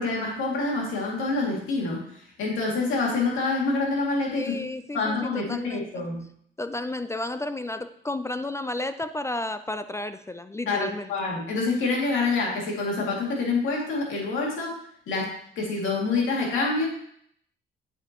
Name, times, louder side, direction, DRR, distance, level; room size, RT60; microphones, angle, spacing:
voice 1, 0.0-2.0 2.4-4.5 4.9-6.2 10.7-14.8 15.1-16.9, left 3 dB, 85° left, -2 dB, 2.5 m, -27 dB
voice 2, 4.3-6.0 6.6-11.1, left 2 dB, 15° left, 10 dB, 0.4 m, -32 dB
8.0 x 7.7 x 3.0 m, 0.67 s
cardioid pair, 90°, 20 cm